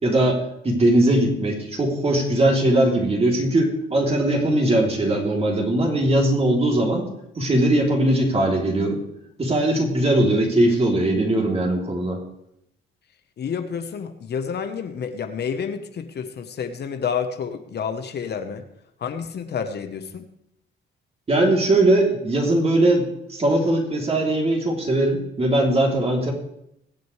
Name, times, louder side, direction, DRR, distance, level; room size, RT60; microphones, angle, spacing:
voice 1, 0.0-7.0 7.4-9.0 9.4-12.2 21.3-26.3, right 1 dB, 30° right, 0 dB, 3.4 m, -20 dB
voice 2, 13.4-18.7 19.0-20.2, left 6 dB, 55° left, 7 dB, 1.2 m, -29 dB
21.5 x 7.8 x 3.3 m, 0.78 s
cardioid pair, 90°, 20 cm